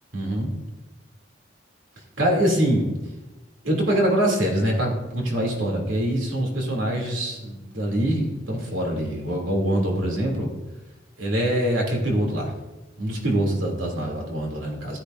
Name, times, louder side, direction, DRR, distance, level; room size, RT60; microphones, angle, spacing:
voice 1, 0.1-0.5 2.2-2.9 3.6-10.5 11.2-12.5 13.0-15.0, right 1 dB, 90° right, -1 dB, 2.8 m, -24 dB
14.5 x 10.0 x 2.6 m, 1.1 s
head